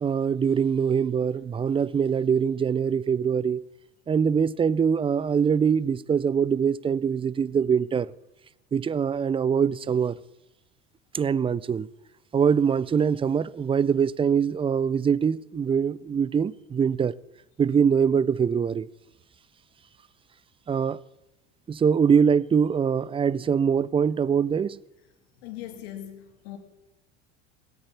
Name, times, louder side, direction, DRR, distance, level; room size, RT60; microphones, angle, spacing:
voice 1, 0.0-3.6 4.1-8.1 8.7-10.2 11.1-11.9 12.3-17.1 17.6-18.9 20.7-21.0 21.7-24.8, right 7 dB, 15° right, 0.4 m, -23 dB
voice 2, 25.4-26.6, left 12 dB, 70° left, 2.3 m, -40 dB
18.5 x 8.5 x 7.1 m
hypercardioid pair, 80°, 32 cm